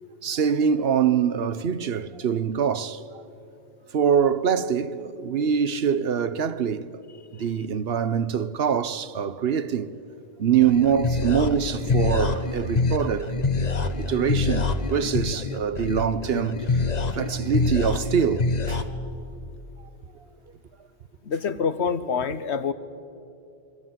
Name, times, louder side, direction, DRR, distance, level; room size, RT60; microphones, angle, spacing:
voice 1, 0.2-3.0 3.9-6.9 7.3-9.9 10.4-13.3 13.8-16.8 17.1-18.8, right 7 dB, 65° right, 1.0 m, -24 dB
sound 1, 10.6-18.8, left 3 dB, 40° left, 1.1 m, -26 dB
voice 2, 21.2-22.7, left 6 dB, 85° left, 1.3 m, -26 dB
29.0 x 23.0 x 7.6 m
omnidirectional pair, 1.1 m